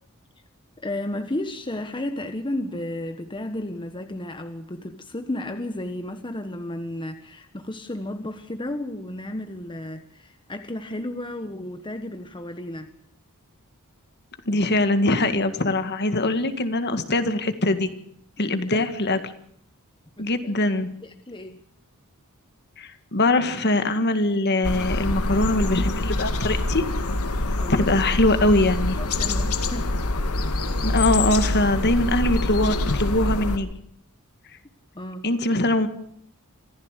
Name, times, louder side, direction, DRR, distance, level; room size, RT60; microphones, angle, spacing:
voice 1, 0.8-12.9 18.4-18.9 20.2-20.5 21.0-21.6 27.5-27.9 29.0-30.0 34.9-35.3, left 1 dB, 20° left, 8 dB, 1.2 m, -33 dB
voice 2, 14.5-17.9 18.4-19.2 20.2-20.9 22.8-26.8 27.7-29.0 30.8-33.7 35.2-35.9, left 2 dB, 50° left, 9 dB, 1.9 m, -22 dB
sound 1, 24.6-33.6, left 2 dB, 85° left, 2.1 m, -25 dB
25.0 x 16.0 x 6.6 m, 0.70 s
head